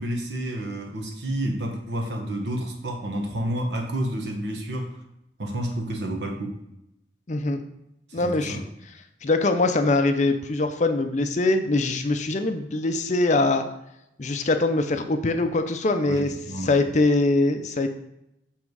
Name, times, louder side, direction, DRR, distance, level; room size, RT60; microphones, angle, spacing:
voice 1, 0.0-5.0 5.4-6.6 8.1-8.7 16.0-16.8, right 1 dB, 70° right, 3 dB, 1.3 m, -30 dB
voice 2, 7.3-7.6 8.1-8.6 9.2-13.6 14.2-16.3 16.6-17.9, left 2 dB, 40° left, 7 dB, 0.5 m, -23 dB
7.3 x 3.6 x 4.7 m, 0.82 s
head